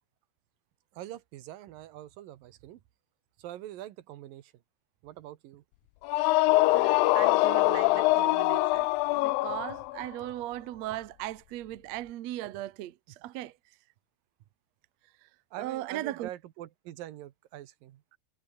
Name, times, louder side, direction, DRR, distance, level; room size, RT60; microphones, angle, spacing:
voice 1, 1.0-2.8 3.4-4.5 5.0-5.6 15.5-18.0, right 13 dB, 80° right, 2.9 m, -44 dB
sound 1, 6.0-10.0, left 20 dB, 85° left, 2.4 m, -24 dB
voice 2, 6.7-8.9 9.2-13.0 13.2-13.5 15.6-16.3, right 14 dB, 65° right, 1.9 m, -37 dB
omnidirectional pair, 4.0 m